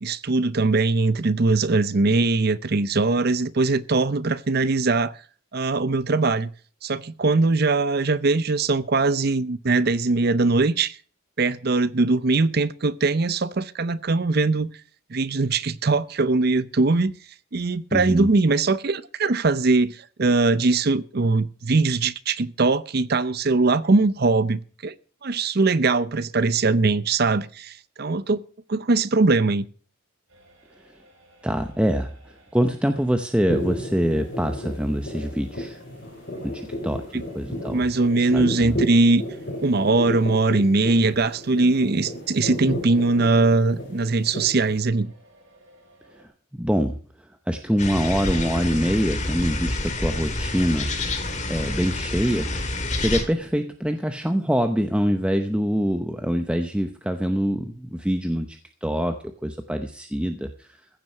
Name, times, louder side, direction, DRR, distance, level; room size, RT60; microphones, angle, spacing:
voice 1, 0.0-5.1 5.5-6.5 6.8-11.0 11.4-14.7 15.1-17.1 17.5-24.9 25.2-28.4 28.7-29.6 37.1-37.2 37.7-39.2 39.6-45.1, right 3 dB, 50° right, 0.6 m, -21 dB
voice 2, 17.9-18.3 31.4-35.8 36.4-37.0 37.3-37.8 38.3-38.8 46.1-47.0 47.5-51.0 51.5-52.5 52.8-59.2 59.4-60.8, equal, 5° right, 0.8 m, -25 dB
sound 1, 30.3-46.3, equal, 75° right, 5.9 m, -54 dB
sound 2, 33.5-44.8, left 1 dB, 55° left, 3.5 m, -33 dB
sound 3, 47.8-53.2, left 2 dB, 35° left, 1.9 m, -28 dB
15.5 x 7.7 x 6.6 m
head